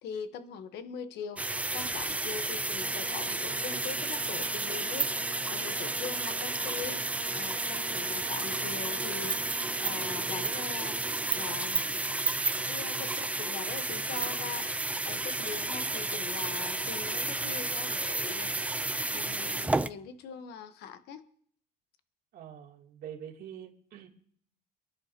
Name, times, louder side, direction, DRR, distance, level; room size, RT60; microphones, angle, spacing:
voice 1, 0.0-12.0 12.7-18.8 19.1-21.2, left 7 dB, 80° left, 10 dB, 1.2 m, -42 dB
sound 1, 1.4-19.9, right 2 dB, 10° right, 0.5 m, -32 dB
Brass instrument, 2.8-11.7, right 13 dB, 85° right, 1.5 m, -47 dB
sound 2, 3.6-17.1, right 5 dB, 30° right, 1.1 m, -38 dB
voice 2, 22.3-24.1, right 9 dB, 65° right, 0 dB, 3.0 m, -45 dB
27.5 x 11.5 x 2.9 m, 0.62 s
cardioid pair, 110°, 17 cm